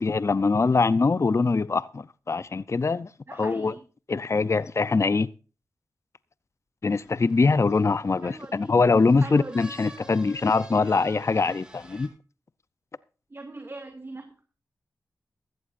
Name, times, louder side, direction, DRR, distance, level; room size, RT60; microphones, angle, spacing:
voice 1, 0.0-3.7 4.1-5.3 6.8-12.1, left 4 dB, 40° left, 0.6 m, -23 dB
voice 2, 3.3-3.8 8.2-8.7 9.2-9.7 13.3-14.3, right 2 dB, 35° right, 2.3 m, -41 dB
sound 1, 6.9-12.1, right 1 dB, 10° right, 4.9 m, -49 dB
15.5 x 14.0 x 2.6 m
cardioid pair, 45°, 7 cm